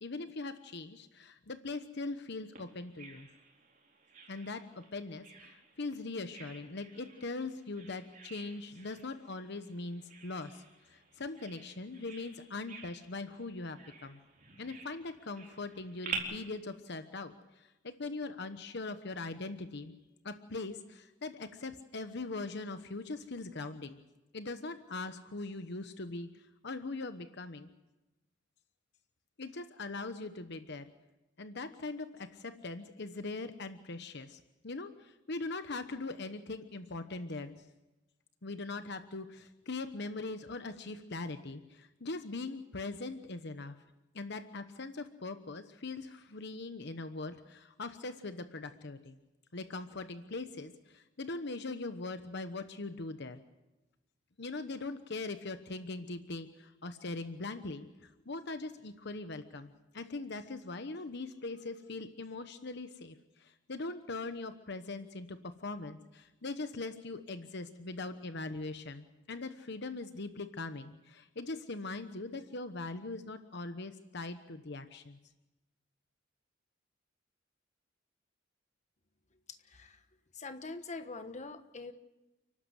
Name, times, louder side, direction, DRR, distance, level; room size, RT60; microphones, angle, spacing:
voice 1, 0.0-3.3 4.3-14.2 14.6-19.9 20.2-24.0 24.3-27.7 29.4-30.8 31.4-37.5 38.4-43.8 44.1-49.2 49.5-53.4 54.4-75.2, left 3 dB, 60° left, 9 dB, 1.1 m, -41 dB
Bird vocalization bird call bird song, 2.6-16.2, right 6 dB, 45° right, 4.2 m, -49 dB
voice 2, 79.5-80.1 80.3-81.9, left 3 dB, 35° left, 8 dB, 1.3 m, -44 dB
29.5 x 12.5 x 8.0 m, 1.0 s
head